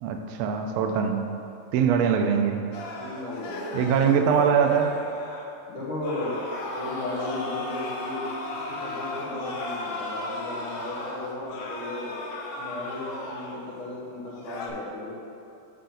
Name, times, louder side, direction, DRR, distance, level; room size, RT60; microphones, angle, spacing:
voice 1, 0.0-1.2 1.7-2.6 3.7-5.0, right 7 dB, 80° right, 4 dB, 1.5 m, -22 dB
voice 2, 1.8-2.5 3.0-4.7 5.7-6.4 6.7-12.2 12.6-15.2, left 1 dB, 50° left, -7 dB, 1.8 m, -35 dB
sound 1, 2.7-5.5 6.0-13.8 14.2-14.7, left 2 dB, 75° left, 1.9 m, -36 dB
6.4 x 5.7 x 3.8 m, 2.6 s
omnidirectional pair, 3.5 m